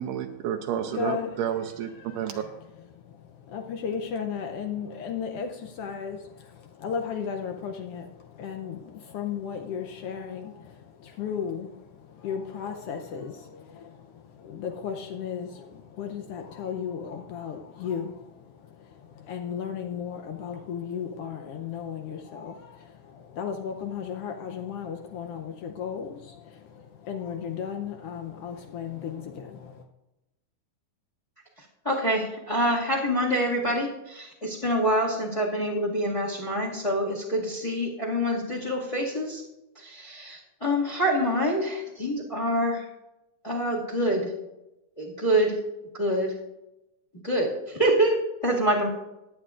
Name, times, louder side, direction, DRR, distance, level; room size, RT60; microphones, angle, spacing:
voice 1, 0.0-2.4, right 9 dB, 85° right, 4 dB, 2.1 m, -30 dB
voice 2, 0.9-1.3 1.9-2.6 2.9-29.8, left 7 dB, 90° left, 4 dB, 1.3 m, -35 dB
voice 3, 31.6-39.4 39.7-42.9 43.4-44.3 45.0-45.6 45.9-46.4 47.2-48.9, equal, 15° left, -4 dB, 1.3 m, -26 dB
20.5 x 8.4 x 2.5 m, 0.95 s
omnidirectional pair, 3.6 m